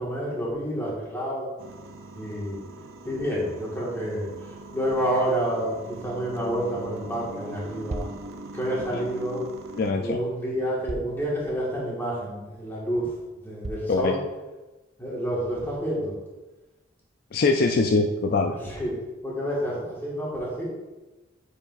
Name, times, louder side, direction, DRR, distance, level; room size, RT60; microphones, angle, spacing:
voice 1, 0.0-1.5 2.1-2.6 3.0-4.3 4.7-8.1 8.5-9.4 10.0-13.1 13.4-14.2 15.0-16.1 18.6-18.9 19.2-20.7, equal, 10° left, -6 dB, 1.8 m, -29 dB
sound 1, 1.6-9.9, right 2 dB, 80° right, 0.6 m, -42 dB
sound 2, 7.9-8.2 9.8-9.9 10.9-11.2 11.8-11.9 12.5-12.6 13.6-14.0, right 2 dB, 35° right, 0.3 m, -35 dB
voice 2, 9.8-10.2 13.9-14.1 17.3-18.5, left 3 dB, 50° left, 4 dB, 0.4 m, -22 dB
8.7 x 4.9 x 2.6 m, 1.1 s
head